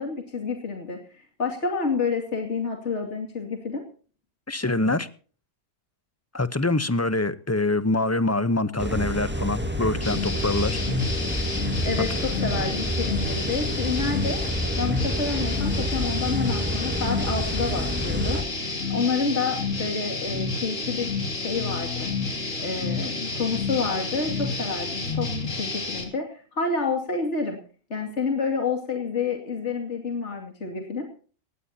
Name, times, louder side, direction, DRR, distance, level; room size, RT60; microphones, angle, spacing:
voice 1, 0.0-3.8 11.8-14.4 14.8-22.1 22.6-27.6 27.9-31.1, left 4 dB, 65° left, 2.8 m, -29 dB
voice 2, 4.5-5.1 6.3-10.8, left 2 dB, 15° left, 0.7 m, -25 dB
sound 1, 8.8-18.4, equal, 10° right, 1.9 m, -29 dB
sound 2, 10.0-26.0, left 3 dB, 85° left, 3.2 m, -30 dB
19.0 x 17.0 x 2.8 m
omnidirectional pair, 1.3 m